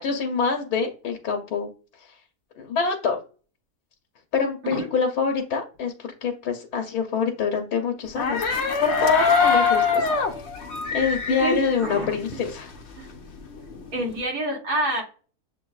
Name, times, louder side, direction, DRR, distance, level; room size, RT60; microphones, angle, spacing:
voice 1, 0.0-1.7 2.0-2.1 2.6-3.2 4.3-8.4 8.8-10.1 10.9-12.7, left 5 dB, 90° left, 3 dB, 1.2 m, -25 dB
sound 1, 8.0-12.8 13.1-14.2, left 5 dB, 55° left, 0.8 m, -24 dB
voice 2, 11.4-12.2 13.0-13.1 13.9-15.0, right 1 dB, 80° right, -2 dB, 1.8 m, -27 dB
7.5 x 2.6 x 2.3 m, 0.38 s
omnidirectional pair, 1.6 m